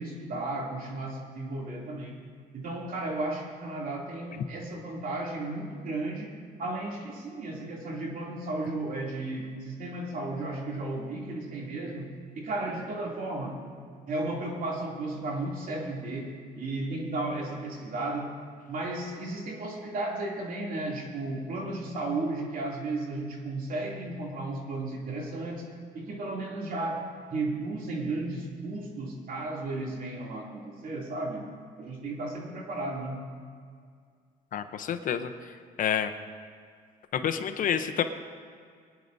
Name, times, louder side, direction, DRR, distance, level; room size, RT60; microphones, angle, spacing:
voice 1, 0.0-2.2 2.5-6.3 6.6-12.1 12.3-13.6 14.1-18.3 18.7-25.6 25.9-27.0 27.3-31.5 31.8-33.2, right 2 dB, 55° right, -2 dB, 2.8 m, -34 dB
voice 2, 34.5-35.3 35.8-36.1 37.1-38.0, left 9 dB, 50° left, 8 dB, 0.8 m, -28 dB
22.5 x 10.0 x 2.7 m, 2.1 s
cardioid pair, 110°, 17 cm